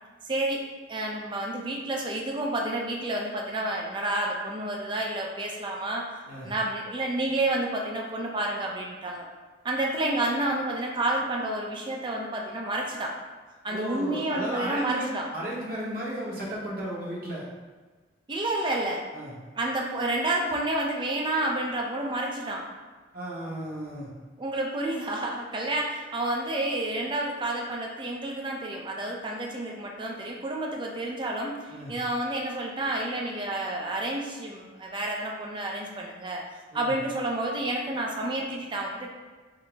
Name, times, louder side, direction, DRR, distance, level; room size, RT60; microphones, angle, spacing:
voice 1, 0.2-0.6 0.9-6.0 6.4-9.3 9.6-13.1 13.6-15.3 18.3-19.0 19.6-22.6 24.4-36.4 36.7-39.1, right 1 dB, 25° right, -1 dB, 0.4 m, -30 dB
voice 2, 13.7-15.1 15.3-17.4 19.1-19.3 23.1-24.1 31.7-32.0 36.7-36.9, right 1 dB, 55° right, -5 dB, 0.9 m, -34 dB
3.9 x 2.0 x 3.3 m, 1.4 s
head